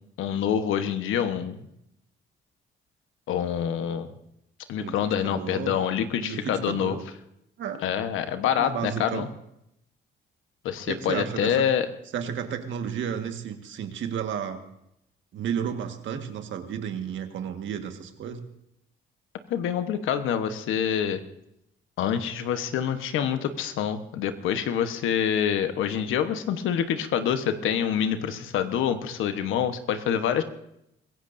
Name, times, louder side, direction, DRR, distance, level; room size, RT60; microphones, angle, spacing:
voice 1, 0.2-1.7 3.3-4.1 4.7-7.0 7.8-9.3 10.6-11.9 19.5-21.2 22.0-30.4, left 9 dB, 85° left, 9 dB, 1.2 m, -26 dB
voice 2, 4.8-5.8 6.2-7.0 7.6-7.8 8.6-9.2 10.9-11.7 12.1-14.6 15.3-18.5, right 8 dB, 70° right, 6 dB, 1.7 m, -32 dB
24.5 x 16.0 x 2.7 m, 0.79 s
cardioid pair, 90°, 20 cm